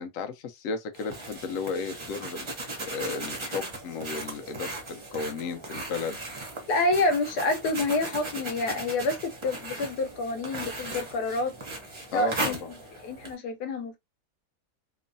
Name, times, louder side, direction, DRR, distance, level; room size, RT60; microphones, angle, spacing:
voice 1, 0.0-2.5 2.8-6.2 12.1-12.7, left 5 dB, 65° left, 0.9 m, -34 dB
sound 1, 0.9-13.4, right 2 dB, 40° right, 0.4 m, -37 dB
voice 2, 6.7-11.5 12.1-12.6 13.0-14.0, left 2 dB, 90° left, 1.2 m, -28 dB
3.0 x 2.1 x 2.5 m
omnidirectional pair, 1.7 m